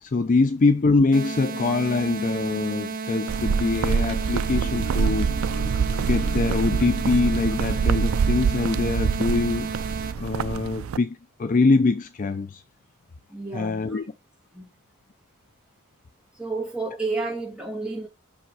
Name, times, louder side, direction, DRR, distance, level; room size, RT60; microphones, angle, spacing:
voice 1, 0.0-5.3 6.1-9.7 10.2-12.6 13.5-14.0, left 3 dB, 35° left, 0.4 m, -23 dB
sound 1, 1.1-10.1, right 4 dB, 40° right, 0.7 m, -33 dB
sound 2, 3.3-11.0, right 6 dB, 70° right, 0.3 m, -25 dB
Marimba xylophone, 4.3-9.9, left 2 dB, 55° left, 0.8 m, -39 dB
voice 2, 13.3-14.0 14.5-14.7 16.3-18.1, right 3 dB, 5° right, 2.4 m, -31 dB
5.7 x 5.1 x 4.7 m
head